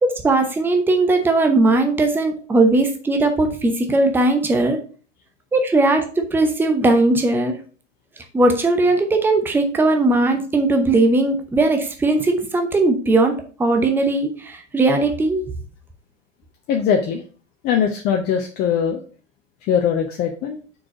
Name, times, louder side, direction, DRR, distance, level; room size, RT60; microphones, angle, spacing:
voice 1, 0.0-4.8 5.5-7.5 8.3-15.5, right 2 dB, 5° right, 5 dB, 0.8 m, -18 dB
voice 2, 16.7-17.2 17.6-19.0 19.7-20.6, left 7 dB, 25° left, 3 dB, 0.8 m, -21 dB
6.0 x 4.8 x 5.1 m, 0.39 s
figure-of-eight pair, 95°, 37 cm